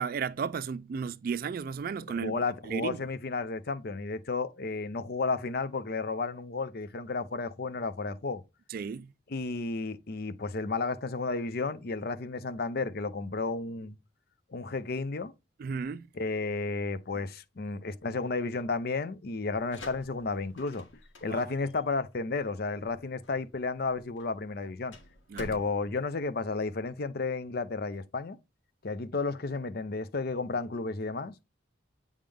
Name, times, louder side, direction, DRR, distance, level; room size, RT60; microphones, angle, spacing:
voice 1, 0.0-2.4 2.6-3.0 8.7-9.1 15.6-16.1 21.2-21.4 25.3-25.5, right 6 dB, 50° right, 0.3 m, -34 dB
voice 2, 2.1-8.4 9.3-14.0 14.5-15.3 16.1-20.9 21.2-24.9 25.4-28.4 28.8-31.5, left 3 dB, 55° left, 0.6 m, -32 dB
sound 1, 19.5-27.0, left 2 dB, 85° left, 1.9 m, -51 dB
8.6 x 3.6 x 3.5 m
head